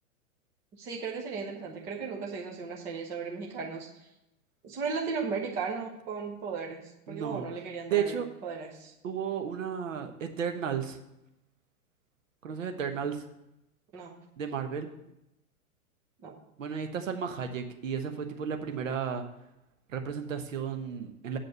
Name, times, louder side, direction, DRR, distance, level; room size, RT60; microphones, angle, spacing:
voice 1, 0.7-4.1 4.6-8.2 8.4-8.9 13.9-14.2 16.2-16.3, right 5 dB, 5° right, -1 dB, 0.3 m, -36 dB
voice 2, 7.1-7.5 7.9-8.3 9.0-11.0 12.4-13.2 14.4-14.9 16.6-19.2 19.9-21.4, right 7 dB, 60° right, 6 dB, 1.2 m, -33 dB
8.4 x 5.2 x 7.5 m, 0.87 s
figure-of-eight pair, 105°, 43 cm